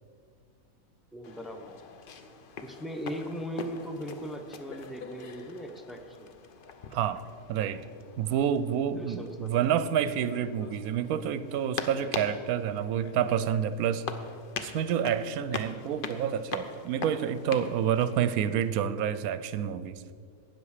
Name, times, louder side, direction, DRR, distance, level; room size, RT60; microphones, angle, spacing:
voice 1, 1.1-1.8 2.6-6.3 9.0-9.5, equal, ahead, 4 dB, 0.5 m, -39 dB
sound 1, 1.2-18.7, left 5 dB, 50° left, 0.7 m, -42 dB
voice 2, 6.9-7.2 7.5-7.8 8.2-14.1 14.6-20.0, right 9 dB, 75° right, 14 dB, 1.0 m, -28 dB
12.5 x 8.9 x 4.9 m, 2.1 s
omnidirectional pair, 1.6 m